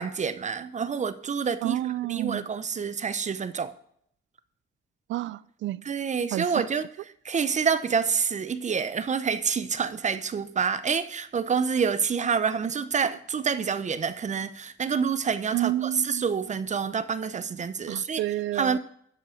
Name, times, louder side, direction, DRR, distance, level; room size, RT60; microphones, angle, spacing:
voice 1, 0.0-1.8 2.1-3.7 5.9-6.9 7.2-18.2 18.5-18.8, right 6 dB, 35° right, 0.7 m, -27 dB
voice 2, 1.6-2.4 5.1-5.8 6.3-6.7 15.5-16.6 17.9-18.8, right 15 dB, 70° right, 0.4 m, -30 dB
12.5 x 5.4 x 5.0 m
cardioid pair, 90°, 20 cm